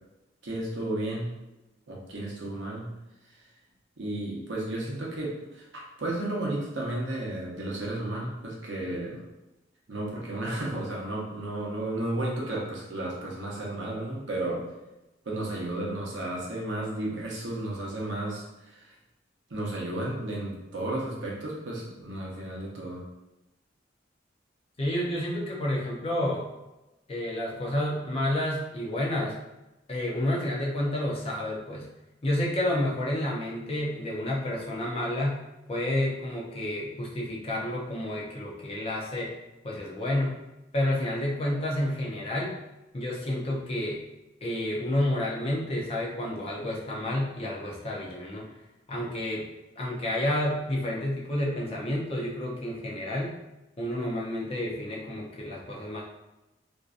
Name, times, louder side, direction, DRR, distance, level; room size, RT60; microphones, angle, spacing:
voice 1, 0.4-1.3 1.9-2.9 4.0-9.2 9.9-14.6 15.2-18.9 19.5-23.0, right 1 dB, 85° right, -3 dB, 0.7 m, -33 dB
voice 2, 24.8-26.5 27.1-29.4 29.9-31.8 32.2-35.4 35.7-39.3 39.6-40.4 40.7-42.6 42.9-44.0 44.4-48.5 48.9-49.4 49.8-53.3 53.8-56.0, left 1 dB, 30° left, -3 dB, 0.5 m, -30 dB
2.5 x 2.1 x 2.4 m, 0.99 s
head